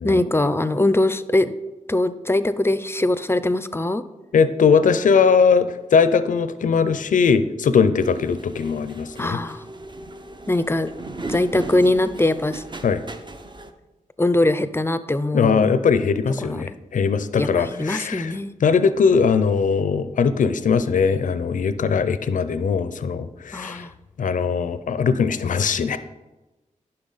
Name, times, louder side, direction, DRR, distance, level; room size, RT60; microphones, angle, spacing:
voice 1, 0.0-1.5 1.9-4.0 9.2-9.6 10.5-10.9 11.3-12.6 14.2-15.7 16.4-16.6 17.4-18.5 23.5-23.9, left 1 dB, 15° left, 13 dB, 0.5 m, -22 dB
voice 2, 4.3-9.4 12.8-13.0 15.3-18.3 18.6-23.9 24.2-26.0, left 5 dB, 70° left, 13 dB, 0.5 m, -20 dB
sound 1, 8.0-13.7, right 2 dB, 35° right, 0.8 m, -37 dB
10.5 x 5.6 x 4.0 m, 1.1 s
cardioid pair, 60°, 14 cm